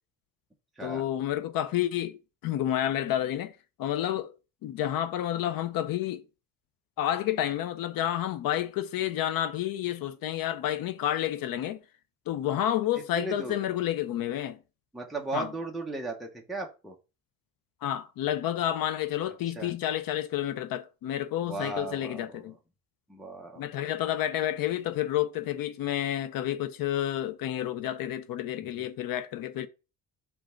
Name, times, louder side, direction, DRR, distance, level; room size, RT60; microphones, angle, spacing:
voice 1, 0.8-4.3 4.6-6.2 7.0-11.8 12.3-14.6 15.3-15.5 17.8-22.6 23.6-29.7, left 12 dB, 80° left, 0.7 m, -30 dB
voice 2, 13.2-13.6 14.9-17.0 19.6-19.7 21.4-22.5 23.1-23.7, right 2 dB, ahead, 0.8 m, -36 dB
5.1 x 3.4 x 5.5 m
cardioid pair, 165°, 34 cm